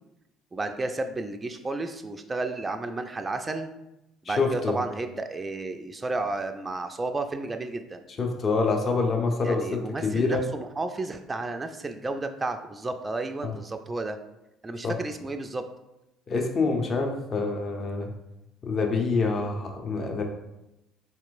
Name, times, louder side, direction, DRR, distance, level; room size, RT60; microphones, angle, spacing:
voice 1, 0.5-3.7 4.3-8.0 9.4-14.2 14.6-15.6, right 2 dB, 25° right, 6 dB, 0.3 m, -32 dB
voice 2, 4.2-4.8 8.2-10.4 13.4-13.5 14.8-14.9 16.3-18.1 18.6-20.2, left 4 dB, 40° left, 3 dB, 0.6 m, -26 dB
4.2 x 2.9 x 2.5 m, 0.90 s
figure-of-eight pair, 55°, 0 cm